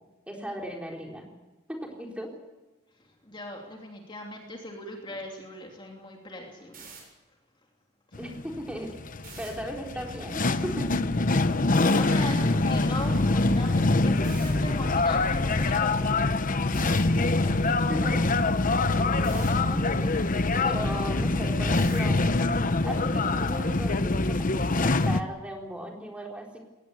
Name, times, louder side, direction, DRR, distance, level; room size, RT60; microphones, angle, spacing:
voice 1, 0.3-1.3 1.7-2.3 8.2-9.0 9.4-10.9 17.9-18.2 19.0-20.2 20.6-22.2 22.8-26.6, equal, 5° right, 0 dB, 4.0 m, -37 dB
voice 2, 3.0-6.9 8.1-8.2 9.3-9.4 11.9-16.4 16.8-17.8, left 1 dB, 25° left, 1 dB, 3.0 m, -39 dB
sound 1, 6.7-7.0 9.2-9.5 11.7-12.0 14.2-14.5 16.7-17.0 19.2-19.5 21.7-22.1, right 6 dB, 45° right, 7.5 m, -45 dB
sound 2, 8.1-25.2, left 2 dB, 40° left, 0.9 m, -24 dB
21.5 x 19.0 x 8.4 m, 1.1 s
head